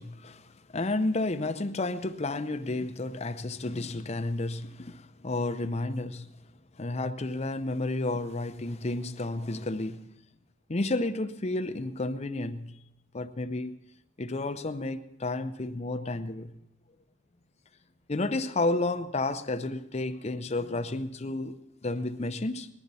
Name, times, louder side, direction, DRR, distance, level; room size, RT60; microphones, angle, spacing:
voice 1, 0.0-6.3 6.8-10.1 10.7-12.8 13.1-13.8 14.2-16.5 18.1-21.5 21.8-22.7, left 2 dB, 30° left, 0.6 m, -31 dB
20.0 x 12.0 x 4.1 m
head